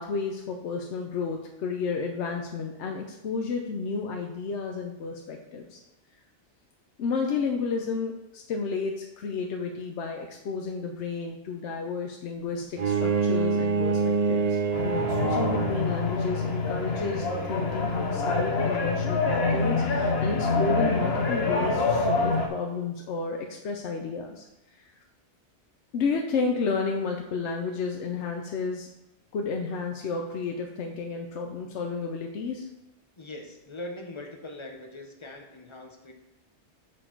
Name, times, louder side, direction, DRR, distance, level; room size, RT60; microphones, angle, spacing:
voice 1, 0.0-5.8 7.0-24.5 24.8-24.9 25.9-28.9 29.3-32.7, left 4 dB, 80° left, 2 dB, 1.0 m, -31 dB
Bowed string instrument, 12.8-16.0, right 5 dB, 45° right, 0.6 m, -26 dB
sound 1, 14.7-22.5, left 3 dB, 65° left, 1.3 m, -26 dB
voice 2, 33.2-36.1, left 1 dB, 30° left, 3 dB, 0.9 m, -41 dB
6.4 x 6.2 x 4.5 m, 0.92 s
omnidirectional pair, 1.1 m